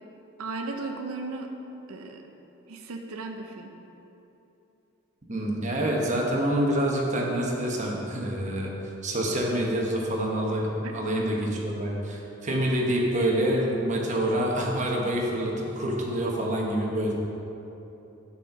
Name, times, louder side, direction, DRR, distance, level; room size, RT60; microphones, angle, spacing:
voice 1, 0.4-1.5 1.9-2.2 2.7-3.7 10.8-11.1, right 3 dB, 85° right, 3 dB, 0.5 m, -36 dB
voice 2, 5.3-8.7 9.0-17.1, right 1 dB, 35° right, -1 dB, 0.9 m, -27 dB
6.2 x 4.3 x 6.5 m, 3.0 s
head